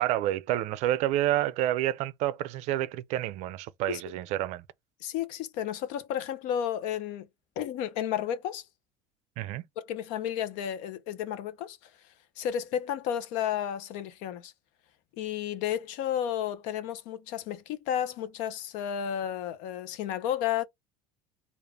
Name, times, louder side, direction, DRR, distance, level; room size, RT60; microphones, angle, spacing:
voice 1, 0.0-4.6 9.4-9.6, right 13 dB, 60° right, 0.4 m, -29 dB
voice 2, 5.0-7.3 7.6-8.6 9.8-11.8 12.4-14.5 15.2-20.6, left 10 dB, 70° left, 0.7 m, -32 dB
3.6 x 2.4 x 3.3 m
cardioid pair, 155°, 13 cm